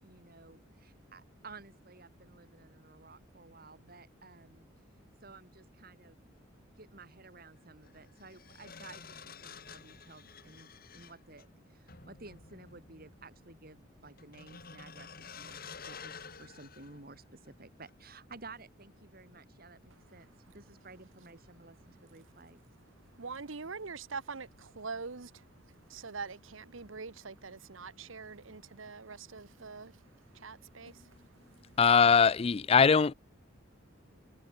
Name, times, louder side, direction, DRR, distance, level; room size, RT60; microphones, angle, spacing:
voice 1, 0.0-4.7 5.2-6.2 6.6-20.3 20.5-22.6, right 3 dB, 50° right, 3.8 m, -54 dB
sound 1, 6.5-6.6 7.8-17.5 17.9-18.1, left 5 dB, 50° left, 4.6 m, -51 dB
voice 2, 23.2-31.6, right 4 dB, 80° right, 1.2 m, -44 dB
voice 3, 31.8-33.1, left 6 dB, 30° left, 0.4 m, -22 dB
head